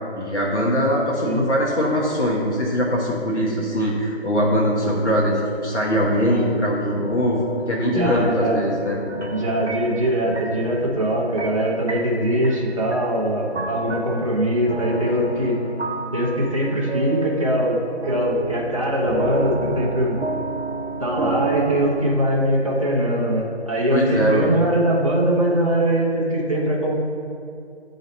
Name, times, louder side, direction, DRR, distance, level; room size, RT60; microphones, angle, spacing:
voice 1, 0.1-9.0 23.9-24.5, equal, 90° left, -4 dB, 1.4 m, -22 dB
sound 1, 4.4-22.2, right 2 dB, 75° right, 0.9 m, -31 dB
voice 2, 7.9-8.7 9.3-15.6 16.1-20.2 21.0-27.0, right 1 dB, 30° right, -5 dB, 0.9 m, -22 dB
8.5 x 3.9 x 4.1 m, 2.5 s
figure-of-eight pair, 175°, 34 cm